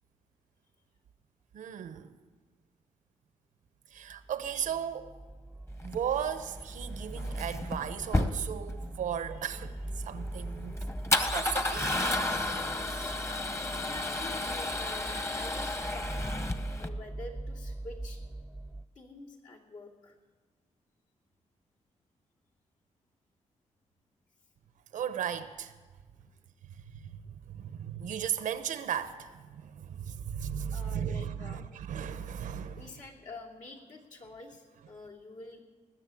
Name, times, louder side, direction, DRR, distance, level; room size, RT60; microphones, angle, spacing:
voice 1, 1.5-2.1 3.9-5.1 5.8-10.8 11.2-12.2 12.9-13.0 24.9-25.7 27.0-32.9, right 9 dB, 90° right, 0.8 m, -36 dB
sound 1, 4.0-18.8, right 2 dB, 10° right, 0.4 m, -42 dB
Male speech man speaking / Car / Engine starting, 5.8-16.9, left 2 dB, 20° left, 1.0 m, -33 dB
voice 2, 13.1-18.2 18.9-20.2 26.1-26.2 30.7-31.7 32.8-35.6, left 2 dB, 75° left, 2.8 m, -47 dB
20.0 x 6.9 x 8.4 m
cardioid pair, 80°, 13 cm